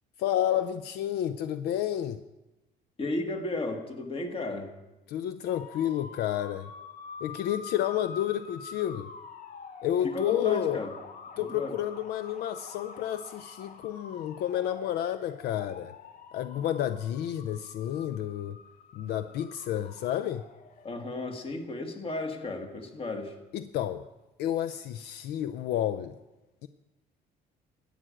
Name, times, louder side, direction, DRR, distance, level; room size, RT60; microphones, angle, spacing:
voice 1, 0.2-2.2 5.1-6.7 7.2-9.1 9.8-10.8 11.4-15.9 16.3-18.6 18.9-20.5 23.5-24.0 24.4-26.2 26.6-26.7, left 11 dB, 75° left, 12 dB, 0.5 m, -30 dB
voice 2, 3.0-4.7 10.1-10.9 11.4-11.7 20.8-23.3, left 2 dB, 35° left, 5 dB, 1.6 m, -34 dB
sound 1, 5.5-20.9, left 5 dB, 50° left, 0.9 m, -46 dB
12.0 x 5.1 x 8.8 m, 1.0 s
cardioid pair, 110°, 17 cm